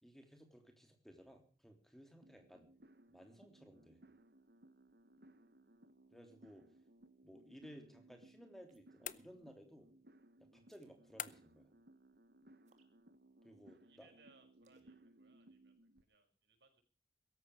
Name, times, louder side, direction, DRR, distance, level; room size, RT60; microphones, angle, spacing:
voice 1, 0.0-2.7 3.1-4.0 6.1-6.7 7.2-9.9 10.4-11.7 13.4-14.1, equal, ahead, 5 dB, 3.4 m, -58 dB
sound 1, 2.2-16.0, right 1 dB, 60° right, 1.1 m, -64 dB
sound 2, 8.7-9.1 10.7-11.0 12.6-13.0 14.6-14.9, right 3 dB, 40° right, 2.5 m, -74 dB
sound 3, 9.0-9.8 11.2-11.7, left 11 dB, 45° left, 0.7 m, -47 dB
voice 2, 13.7-16.8, right 4 dB, 80° right, 4 dB, 5.7 m, -70 dB
17.0 x 14.0 x 5.0 m, 0.41 s
head